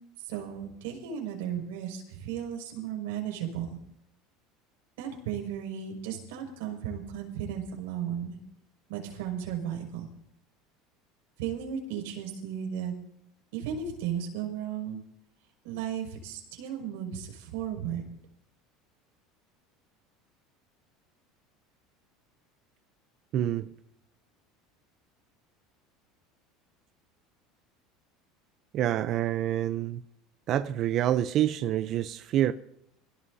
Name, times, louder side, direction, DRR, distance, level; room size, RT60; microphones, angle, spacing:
voice 1, 0.2-3.8 5.0-8.4 8.9-10.1 11.4-12.9 13.5-15.0 15.6-18.0, right 9 dB, 90° right, 5.6 m, -35 dB
voice 2, 23.3-23.7 28.7-30.0 30.5-32.5, right 12 dB, 40° right, 0.6 m, -27 dB
27.0 x 17.0 x 2.7 m
cardioid pair, 160°, 0 cm